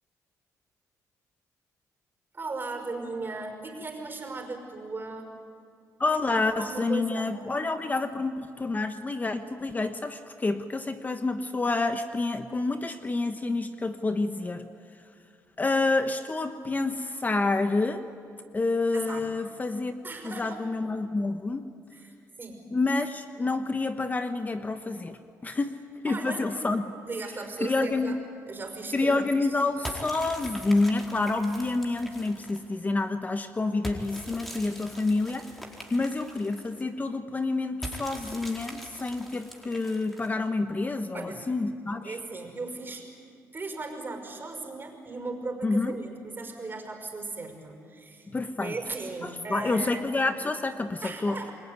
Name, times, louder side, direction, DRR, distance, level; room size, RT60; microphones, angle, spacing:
voice 1, 2.3-5.3 6.6-7.3 18.9-19.3 20.0-20.6 21.9-22.6 26.1-26.4 27.1-28.2 28.5-29.2 41.1-41.4 42.0-43.1 43.5-48.3 48.6-50.1 51.0-51.5, right 3 dB, 35° right, 5 dB, 5.8 m, -37 dB
voice 2, 6.0-14.7 15.6-18.1 18.5-19.9 20.2-21.7 22.7-25.8 26.0-26.8 27.6-28.2 28.9-35.5 35.9-42.2 45.6-46.0 48.3-48.8 49.2-51.4, left 3 dB, 25° left, 8 dB, 1.2 m, -28 dB
sound 1, 29.8-32.7 33.8-36.8 37.8-40.5, right 1 dB, ahead, 4.4 m, -42 dB
29.0 x 21.5 x 9.6 m, 2.3 s
cardioid pair, 80°, 6 cm